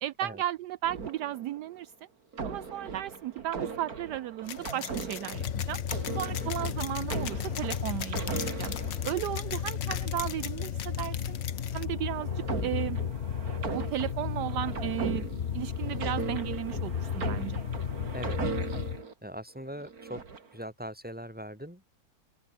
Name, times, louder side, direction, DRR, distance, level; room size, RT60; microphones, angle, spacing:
voice 1, 0.0-1.9 2.4-5.8 6.2-8.7 9.0-11.4 11.7-12.3 12.6-13.0 13.7-15.3 15.5-17.6, right 13 dB, 75° right, 1.2 m, -34 dB
sound 1, 0.8-1.8 2.3-9.6 11.5-19.1 19.8-20.6, right 5 dB, 55° right, 2.8 m, -39 dB
sound 2, 4.4-11.9, left 9 dB, 80° left, 2.0 m, -40 dB
sound 3, 5.3-19.0, left 8 dB, 50° left, 0.8 m, -34 dB
voice 2, 19.2-20.2 20.5-21.9, equal, 5° right, 6.6 m, -41 dB
open air
omnidirectional pair, 1.9 m